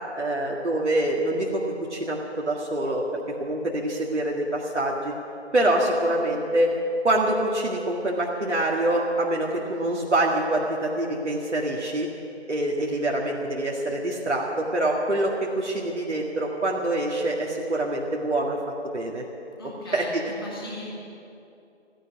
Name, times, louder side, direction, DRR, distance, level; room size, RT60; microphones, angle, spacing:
voice 1, 0.1-1.6 1.9-5.1 5.5-6.7 7.0-12.1 12.5-18.6 18.9-19.3 19.9-20.2, right 1 dB, 85° right, -3 dB, 2.0 m, -25 dB
voice 2, 19.6-20.9, left 1 dB, 20° left, -4 dB, 2.4 m, -39 dB
14.5 x 10.0 x 8.7 m, 2.7 s
figure-of-eight pair, 175°, 34 cm